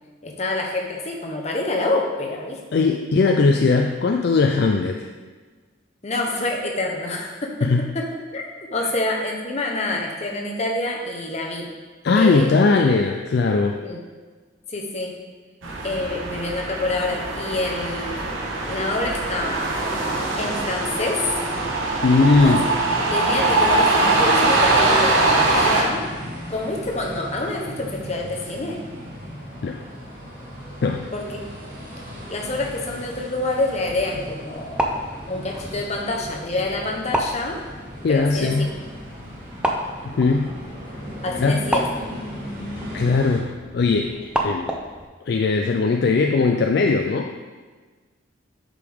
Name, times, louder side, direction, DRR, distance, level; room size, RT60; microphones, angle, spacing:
voice 1, 0.2-2.9 6.0-8.4 8.7-11.7 12.1-12.8 13.8-14.0 14.7-15.2 15.8-18.4 18.7-19.7 20.4-21.2 22.4-22.6 23.1-26.0 26.5-28.8 31.1-31.5 32.3-34.8 35.3-37.6 38.1-38.7 41.2-41.9, left 2 dB, 35° left, 0 dB, 0.9 m, -27 dB
voice 2, 2.7-5.1 7.6-7.9 8.8-8.9 12.0-13.8 22.0-22.6 29.6-29.8 30.8-31.0 38.0-38.7 40.0-40.5 41.4-41.6 42.9-43.5 43.7-44.1 44.4-44.7 45.3-47.3, left 4 dB, 55° left, 3 dB, 0.3 m, -19 dB
sound 1, 15.6-25.8, right 2 dB, 80° right, 1.2 m, -22 dB
sound 2, 24.0-43.4, equal, 45° right, 2.1 m, -37 dB
sound 3, 34.5-45.0, right 1 dB, 5° right, 0.5 m, -31 dB
8.3 x 5.0 x 3.6 m, 1.4 s
head